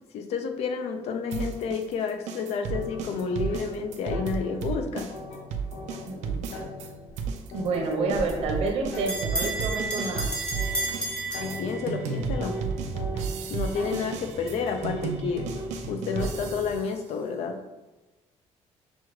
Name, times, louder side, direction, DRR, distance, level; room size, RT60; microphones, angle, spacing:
voice 1, 0.1-5.1 11.3-12.6 13.5-15.5 15.9-17.6, left 5 dB, 65° left, 5 dB, 0.4 m, -30 dB
sound 1, 1.3-6.9 7.2-16.9, right 5 dB, 85° right, 0.4 m, -33 dB
sound 2, 2.7-16.8, left 1 dB, 85° left, 0.8 m, -40 dB
voice 2, 6.1-6.4 7.5-10.3, right 3 dB, 60° right, 1 dB, 0.8 m, -29 dB
Bell, 8.1-12.2, right 1 dB, 10° left, 0.8 m, -32 dB
6.1 x 2.3 x 3.0 m, 1.1 s
cardioid pair, 175°, 12 cm